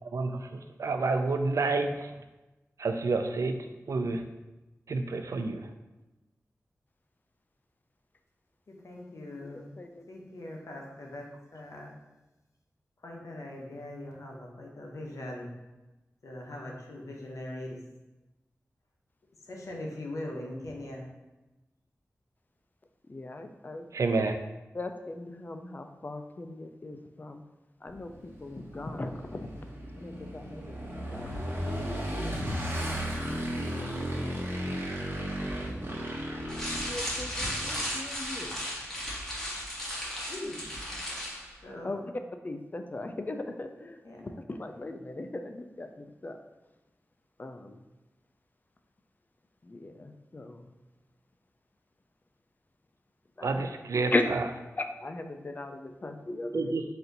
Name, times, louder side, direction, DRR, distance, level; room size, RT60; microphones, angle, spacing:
voice 1, 0.0-2.1 2.8-3.6 3.9-4.2 4.9-5.6 23.9-24.4 53.4-54.5 56.5-56.8, right 3 dB, 70° right, 7 dB, 0.4 m, -29 dB
voice 2, 8.7-9.7 10.1-11.9 13.0-15.5 16.2-17.8 19.4-21.1 40.3-40.6 41.6-42.0 44.0-44.4, left 1 dB, 75° left, -1 dB, 0.8 m, -41 dB
voice 3, 9.4-10.0 23.1-23.8 24.2-24.3 24.7-27.4 27.8-29.5 30.0-30.8 31.1-32.5 33.7-33.9 36.9-38.6 41.8-42.0 42.4-44.0 44.2-46.4 47.4-47.8 49.6-50.6 53.4-53.7 54.1-54.2 54.8-56.7, left 2 dB, 35° left, 6 dB, 0.4 m, -38 dB
Motorcycle / Engine, 27.9-37.6, equal, 45° right, 1.1 m, -35 dB
sound 1, 36.5-41.5, equal, 10° left, 1.3 m, -35 dB
4.2 x 2.6 x 3.9 m, 1.1 s
wide cardioid pair, 60°, 5 cm